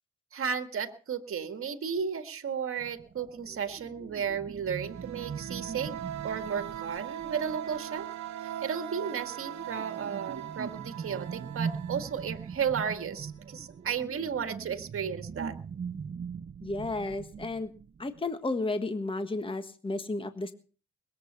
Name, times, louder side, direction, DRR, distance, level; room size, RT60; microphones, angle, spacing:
voice 1, 0.3-8.1 8.4-15.5, right 7 dB, 45° right, 8 dB, 1.9 m, -34 dB
sound 1, 2.8-8.0 8.9-18.2, right 6 dB, 30° right, 0.7 m, -41 dB
sound 2, 4.7-13.3, right 11 dB, 65° right, 1.3 m, -41 dB
voice 2, 16.6-17.7 18.0-20.5, left 2 dB, 15° left, 9 dB, 1.5 m, -32 dB
20.5 x 8.1 x 6.9 m, 0.40 s
cardioid pair, 90°, 30 cm